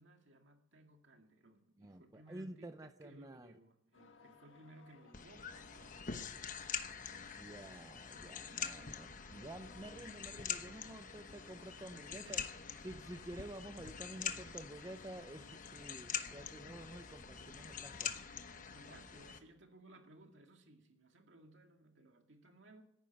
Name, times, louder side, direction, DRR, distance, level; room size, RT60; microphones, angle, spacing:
voice 1, 0.0-6.5 12.1-12.5 18.6-22.8, right 2 dB, 70° right, 4 dB, 2.2 m, -60 dB
voice 2, 1.8-3.6 7.1-12.4 12.8-18.3, right 1 dB, 20° right, 10 dB, 0.6 m, -50 dB
sound 1, 3.9-19.0, left 4 dB, 85° left, 1.5 m, -61 dB
sound 2, 5.1-19.4, left 7 dB, 45° left, 1.0 m, -45 dB
14.5 x 11.0 x 8.8 m, 0.82 s
head